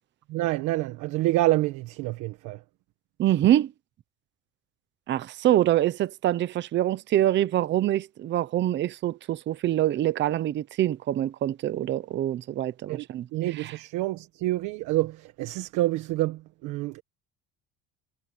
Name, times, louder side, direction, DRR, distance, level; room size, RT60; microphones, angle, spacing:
voice 1, 0.3-2.6 12.9-17.0, right 17 dB, 70° right, 1.3 m, -27 dB
voice 2, 3.2-3.7 5.1-13.2, right 13 dB, 35° right, 0.8 m, -25 dB
cardioid pair, 165°, 32 cm